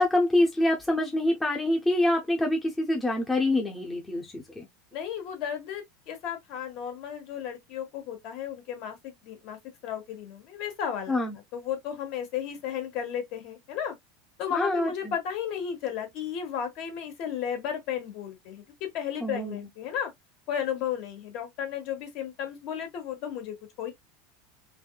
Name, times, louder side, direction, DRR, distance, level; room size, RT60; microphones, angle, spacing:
voice 1, 0.0-4.7 11.1-11.4 14.5-15.1 19.2-19.7, left 1 dB, 10° left, 0.7 m, -26 dB
voice 2, 4.9-11.2 11.5-13.9 14.4-20.1 20.5-23.9, left 8 dB, 50° left, 1.3 m, -34 dB
3.4 x 3.2 x 2.2 m
supercardioid pair, 150°, 0 cm